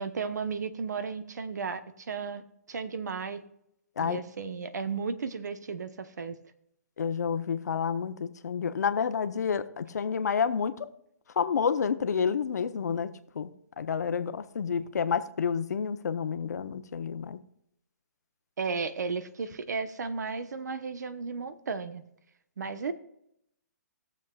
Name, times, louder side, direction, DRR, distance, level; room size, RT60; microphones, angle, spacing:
voice 1, 0.0-2.4 2.7-3.4 4.0-6.4 18.6-22.1 22.6-22.9, right 5 dB, 75° right, 1.0 m, -34 dB
voice 2, 7.0-10.9 11.4-13.1 13.3-13.5 13.8-17.4, left 6 dB, 70° left, 0.9 m, -29 dB
20.0 x 7.2 x 2.4 m
hypercardioid pair, 150°, 9 cm